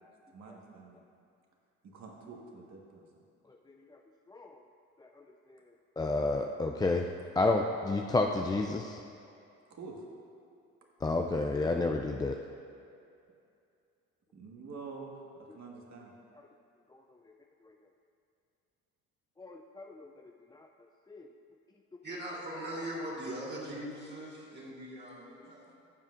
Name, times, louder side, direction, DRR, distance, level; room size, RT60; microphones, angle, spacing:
voice 1, 0.0-1.1 1.9-3.0 9.7-10.0 14.3-16.1, right 4 dB, 50° right, -1 dB, 1.6 m, -47 dB
voice 2, 6.0-7.1 7.4-9.0 11.0-12.4 19.4-20.1 21.1-21.3, left 2 dB, 10° left, 2 dB, 0.4 m, -30 dB
voice 3, 22.0-25.7, right 1 dB, 30° right, -6 dB, 2.1 m, -40 dB
12.0 x 7.2 x 2.6 m, 2.5 s
hypercardioid pair, 60°, 36 cm